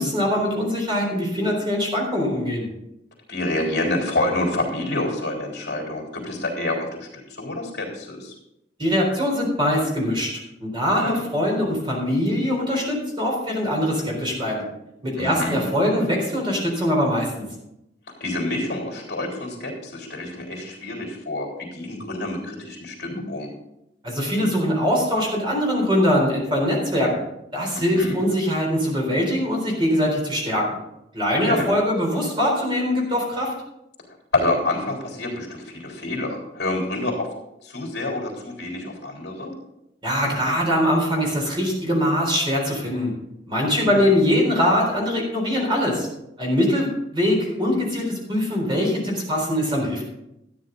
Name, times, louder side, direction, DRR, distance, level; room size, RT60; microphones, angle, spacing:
voice 1, 0.0-2.7 8.8-10.3 10.6-14.6 15.0-17.3 24.0-30.7 31.1-33.5 40.0-43.1 43.5-46.1 46.4-50.0, equal, 25° right, -1 dB, 4.0 m, -22 dB
voice 2, 3.3-8.3 11.0-11.2 15.1-15.6 18.2-23.5 27.8-28.2 31.4-31.7 34.3-37.3 37.6-39.5 43.8-44.1, left 2 dB, 65° left, 0 dB, 3.5 m, -27 dB
13.5 x 9.4 x 3.9 m, 0.85 s
head